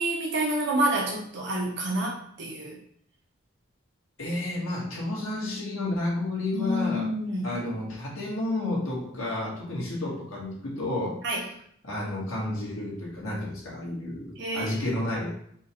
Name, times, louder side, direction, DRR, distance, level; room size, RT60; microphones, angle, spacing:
voice 1, 0.0-2.8 6.5-7.6 11.2-11.4 14.4-14.8, right 1 dB, 55° right, -2 dB, 0.9 m, -28 dB
voice 2, 4.2-7.1 7.4-11.2 11.8-15.3, left 1 dB, 85° left, -4 dB, 1.6 m, -31 dB
4.4 x 2.5 x 4.3 m, 0.65 s
head